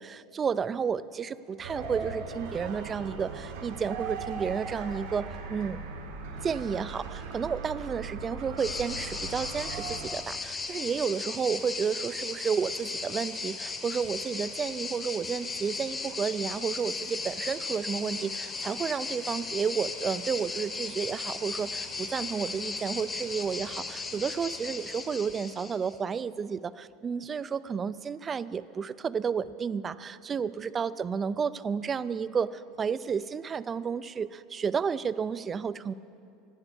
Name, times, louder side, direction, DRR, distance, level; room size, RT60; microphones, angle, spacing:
voice 1, 0.0-5.8 6.4-35.9, right 6 dB, 20° right, 17 dB, 0.3 m, -31 dB
sound 1, 1.6-10.1, right 4 dB, 85° right, 1.7 m, -39 dB
sound 2, 8.6-25.9, left 3 dB, 20° left, 0.9 m, -36 dB
10.5 x 9.6 x 8.2 m, 2.6 s
supercardioid pair, 140°, 0 cm